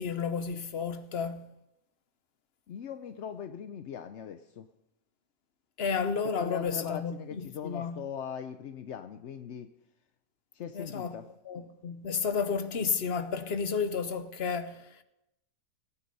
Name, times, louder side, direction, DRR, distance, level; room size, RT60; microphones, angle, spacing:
voice 1, 0.0-1.5 5.8-8.0 10.7-11.2 11.4-15.0, left 6 dB, 45° left, 1.0 m, -32 dB
voice 2, 2.7-4.7 6.4-9.7 10.5-11.3, left 8 dB, 60° left, 0.8 m, -40 dB
18.5 x 9.8 x 5.4 m
omnidirectional pair, 1.8 m